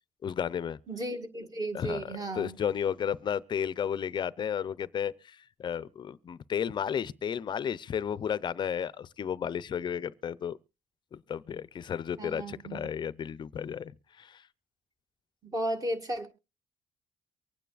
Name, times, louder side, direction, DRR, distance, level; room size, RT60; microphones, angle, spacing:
voice 1, 0.2-0.8 1.7-10.6 11.1-13.9 14.2-14.4, left 8 dB, 40° left, 0.5 m, -33 dB
voice 2, 0.9-2.6 12.2-12.9 15.4-16.3, right 1 dB, 30° right, 1.8 m, -34 dB
24.5 x 9.2 x 2.4 m
cardioid pair, 145°, 12 cm